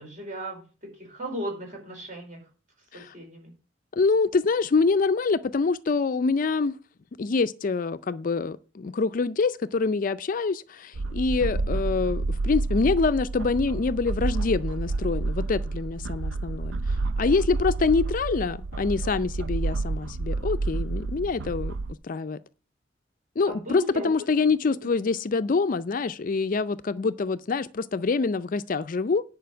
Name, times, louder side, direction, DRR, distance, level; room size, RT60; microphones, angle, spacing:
voice 1, 0.0-2.4 2.9-3.5 11.4-11.6 21.0-21.3 23.5-24.1 24.4-24.5, equal, 45° right, 4.6 m, -37 dB
voice 2, 3.9-6.8 7.2-16.7 17.2-21.7 22.0-22.4 23.4-29.2, left 4 dB, 45° left, 0.4 m, -25 dB
sound 1, 10.9-21.9, right 3 dB, 85° right, 0.5 m, -29 dB
10.5 x 5.1 x 7.7 m
head